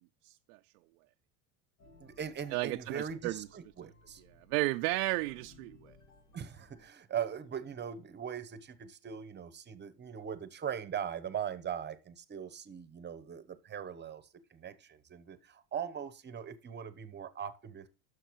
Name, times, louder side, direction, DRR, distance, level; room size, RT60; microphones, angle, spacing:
sound 1, 1.8-6.9, left 2 dB, 70° left, 2.1 m, -61 dB
voice 1, 2.0-4.2 6.3-14.2 14.5-17.9, right 8 dB, 20° right, 0.9 m, -40 dB
voice 2, 2.5-3.4 4.5-5.8, right 20 dB, 75° right, 0.5 m, -32 dB
10.0 x 6.4 x 3.1 m
supercardioid pair, 110°, 47 cm